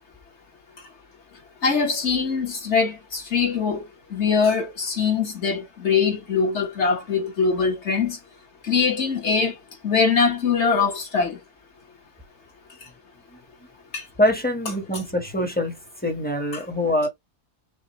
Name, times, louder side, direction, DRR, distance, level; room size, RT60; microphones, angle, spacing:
voice 1, 1.6-3.8 4.1-8.2 8.6-9.5 9.8-11.4 13.9-14.0 16.5-16.6, left 5 dB, 45° left, 1.6 m, -22 dB
voice 2, 14.2-15.8 16.0-17.1, left 1 dB, 5° left, 1.0 m, -24 dB
6.6 x 2.6 x 3.0 m
omnidirectional pair, 1.7 m